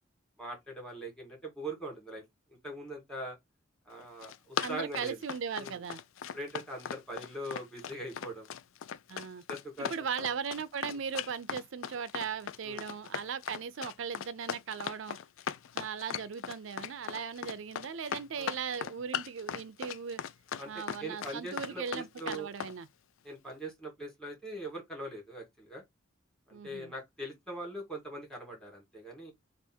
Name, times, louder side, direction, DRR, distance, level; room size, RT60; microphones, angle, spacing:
voice 1, 0.4-2.2 2.6-3.4 3.9-5.2 5.6-5.8 6.3-8.5 9.5-9.9 10.2-10.3 10.8-11.0 12.6-12.8 18.4-18.5 20.6-22.5 23.2-25.8 26.5-29.3, right 1 dB, 5° left, 1.9 m, -41 dB
Run, 4.0-22.7, left 8 dB, 80° left, 0.4 m, -38 dB
voice 2, 4.6-6.0 9.1-9.4 9.8-15.2 15.7-20.2 20.7-22.9 26.5-26.9, right 6 dB, 75° right, 0.4 m, -38 dB
3.4 x 2.5 x 4.3 m
head